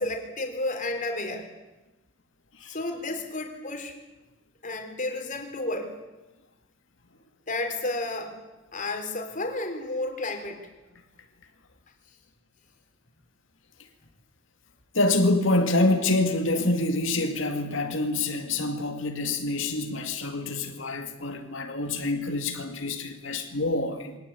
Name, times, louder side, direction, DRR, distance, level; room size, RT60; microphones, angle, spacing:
voice 1, 0.0-1.5 2.7-4.0 4.6-5.9 7.5-8.4 8.7-10.7, left 2 dB, 40° left, 3.9 m, -31 dB
voice 2, 14.9-24.2, left 2 dB, 75° left, 2.3 m, -26 dB
23.0 x 18.5 x 8.6 m
head